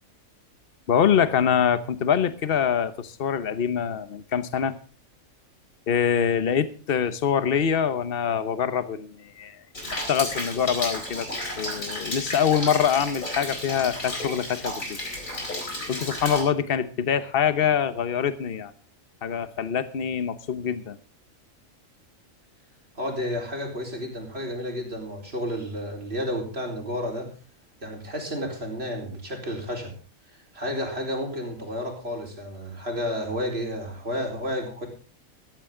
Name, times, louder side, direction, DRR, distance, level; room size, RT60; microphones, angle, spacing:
voice 1, 0.9-4.7 5.9-9.6 10.1-11.3 11.6-15.0 15.9-18.7 19.2-21.0, left 8 dB, 45° left, 12 dB, 1.1 m, -24 dB
Rain, 9.7-16.4, left 1 dB, 70° left, 4.7 m, -32 dB
voice 2, 23.0-27.3 27.8-29.9 30.5-34.9, equal, 45° right, 1 dB, 4.4 m, -31 dB
15.0 x 14.0 x 3.8 m, 0.37 s
omnidirectional pair, 1.5 m